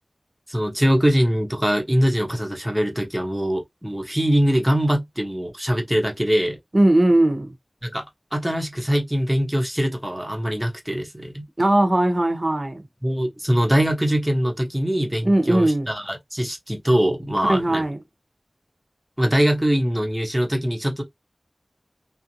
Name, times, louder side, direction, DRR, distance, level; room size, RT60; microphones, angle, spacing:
voice 1, 0.5-6.6 7.8-8.0 8.3-11.4 13.0-17.9 19.2-21.0, equal, 5° right, 0.8 m, -22 dB
voice 2, 6.7-7.5 11.6-12.8 15.2-15.9 17.5-18.0, right 1 dB, 45° right, 0.8 m, -19 dB
2.5 x 2.0 x 2.8 m
wide cardioid pair, 65°, 0 cm